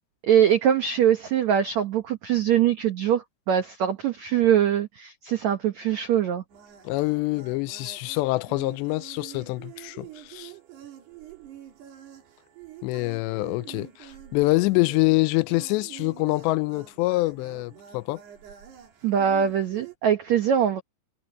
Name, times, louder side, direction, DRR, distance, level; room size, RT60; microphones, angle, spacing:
voice 1, 0.2-6.4 19.0-20.8, right 9 dB, 85° right, 1.5 m, -22 dB
sound 1, 6.5-20.0, right 10 dB, 65° right, 5.2 m, -46 dB
voice 2, 6.8-10.5 12.8-18.2, left 22 dB, 85° left, 2.8 m, -25 dB
omnidirectional pair, 5.1 m